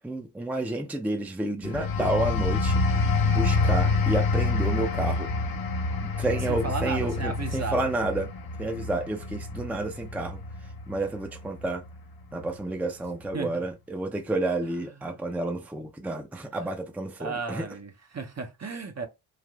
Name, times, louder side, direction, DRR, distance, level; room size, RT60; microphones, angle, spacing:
voice 1, 0.0-2.8 3.3-5.3 6.0-8.3 8.6-10.4 10.9-11.8 12.3-17.6, right 2 dB, 5° right, 0.6 m, -30 dB
sound 1, 1.6-12.0 12.4-12.7, left 3 dB, 50° left, 0.7 m, -27 dB
voice 2, 6.4-7.8 13.3-13.7 14.6-15.2 16.5-16.7 17.2-19.1, right 4 dB, 35° right, 0.8 m, -35 dB
3.3 x 2.4 x 2.4 m
supercardioid pair, 40°, 47 cm